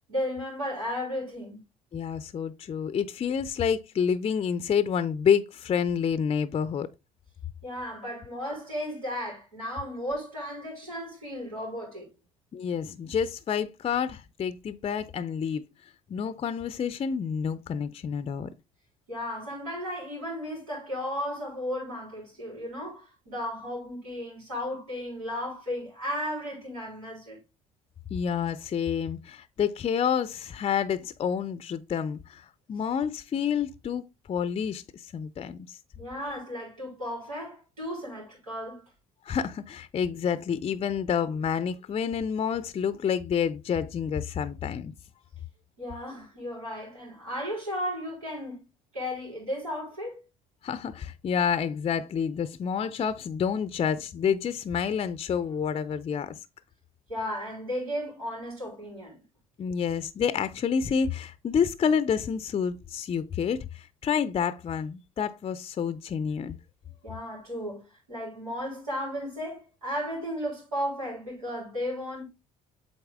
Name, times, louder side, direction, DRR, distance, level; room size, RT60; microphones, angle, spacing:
voice 1, 0.1-1.6 7.6-12.1 19.1-27.4 36.0-38.8 45.8-48.6 48.9-50.2 57.1-59.2 67.0-67.8 68.1-72.2, equal, 85° right, 3.6 m, -34 dB
voice 2, 1.9-6.9 12.5-15.7 16.1-18.5 28.1-35.8 39.3-44.9 50.6-56.4 59.6-66.6, left 7 dB, 35° left, 0.5 m, -28 dB
7.8 x 4.1 x 3.6 m
hypercardioid pair, 60°, 18 cm